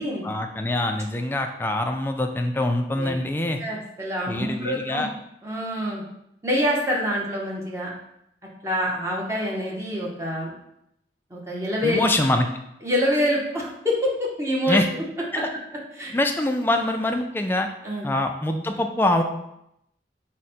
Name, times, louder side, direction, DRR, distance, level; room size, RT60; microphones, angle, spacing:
voice 1, 0.2-3.6 4.3-5.1 11.8-12.5 14.7-14.9 15.3-15.5 16.1-17.7 18.0-19.2, left 1 dB, 10° left, 4 dB, 0.3 m, -24 dB
voice 2, 3.6-5.1 5.4-6.0 6.4-7.9 8.6-10.5 11.3-12.1 12.8-14.8 15.9-16.1 17.8-18.1, equal, 15° right, -3 dB, 0.7 m, -26 dB
4.8 x 2.1 x 4.2 m, 0.80 s
head